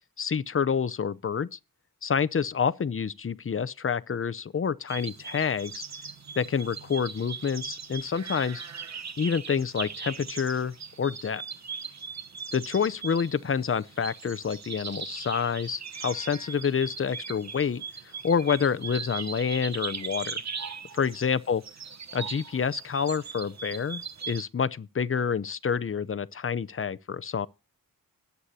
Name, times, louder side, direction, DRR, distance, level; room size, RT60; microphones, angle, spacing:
voice 1, 0.2-1.6 2.0-5.8 6.4-8.6 9.2-11.4 12.5-17.8 18.2-20.4 20.9-21.6 22.1-27.5, left 6 dB, 40° left, 0.6 m, -28 dB
sound 1, 4.9-24.4, right 6 dB, 50° right, 1.0 m, -39 dB
19.0 x 8.3 x 2.8 m
wide cardioid pair, 110°, 34 cm